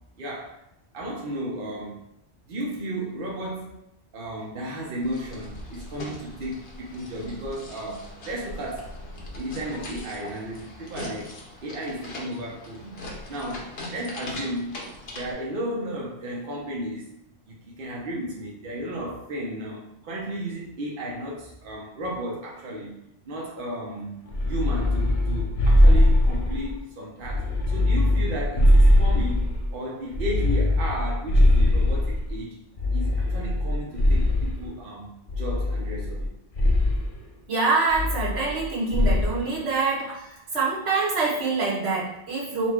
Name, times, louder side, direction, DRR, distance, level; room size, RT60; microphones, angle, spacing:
voice 1, 0.2-0.6 0.9-2.0 2.5-3.8 4.1-9.0 9.4-13.0 13.3-14.8 15.1-17.1 17.5-23.0 23.3-24.2 24.5-32.6 32.9-36.3, right 1 dB, 55° right, -3 dB, 0.9 m, -34 dB
sound 1, 5.0-15.3, left 1 dB, 65° left, 1.1 m, -40 dB
sound 2, 24.3-26.7 27.2-29.7 30.1-32.3 32.8-34.6 35.3-36.2 36.5-37.0 37.9-38.6 38.9-39.4, left 1 dB, 40° left, 0.6 m, -21 dB
voice 2, 37.5-42.7, right 4 dB, 75° right, -4 dB, 1.4 m, -25 dB
4.3 x 2.2 x 4.4 m, 0.84 s
omnidirectional pair, 1.1 m